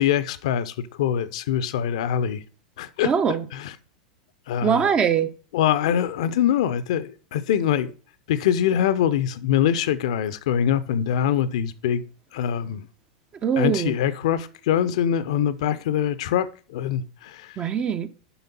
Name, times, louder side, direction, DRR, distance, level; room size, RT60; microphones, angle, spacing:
voice 1, 0.0-2.4 2.8-3.1 3.5-3.7 4.5-4.9 5.5-7.9 8.3-12.0 12.3-12.9 13.6-17.6, left 9 dB, 55° left, 0.6 m, -23 dB
voice 2, 3.0-3.4 4.6-5.3 13.4-14.0 17.6-18.1, right 7 dB, 25° right, 0.7 m, -22 dB
7.1 x 5.7 x 5.3 m
figure-of-eight pair, 90°, 4 cm